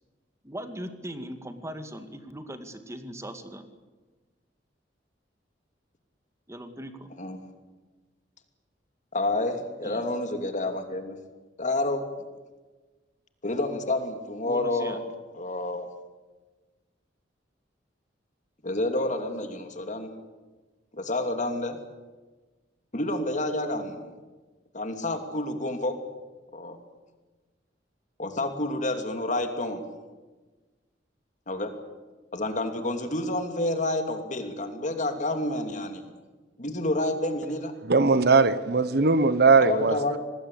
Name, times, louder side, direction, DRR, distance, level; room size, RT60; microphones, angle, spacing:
voice 1, 0.4-3.6 6.5-7.1 9.8-10.0 14.5-15.0, equal, 15° right, 8 dB, 2.1 m, -39 dB
voice 2, 7.2-7.5 9.1-11.2 11.6-12.0 13.4-15.0 15.3-15.9 18.6-20.1 20.9-21.8 22.9-24.1 24.7-26.0 26.5-26.8 28.2-29.8 31.5-31.7 32.3-36.1 36.6-37.7 39.6-40.2, left 2 dB, 45° left, 6 dB, 2.8 m, -29 dB
voice 3, 37.9-40.2, right 4 dB, 60° right, 14 dB, 1.1 m, -20 dB
25.5 x 19.5 x 8.5 m, 1.3 s
head